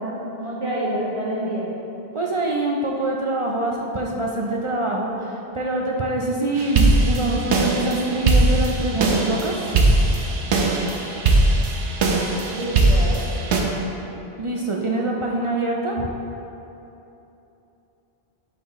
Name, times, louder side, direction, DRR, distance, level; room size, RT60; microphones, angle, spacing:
voice 1, 0.0-1.7 12.5-13.2, right 1 dB, 30° right, -6 dB, 1.3 m, -27 dB
voice 2, 2.1-9.8 14.4-16.1, right 2 dB, 50° right, -1 dB, 0.3 m, -24 dB
sound 1, 6.6-13.6, right 2 dB, 85° right, 1.0 m, -20 dB
11.0 x 4.2 x 3.0 m, 3.0 s
omnidirectional pair, 1.1 m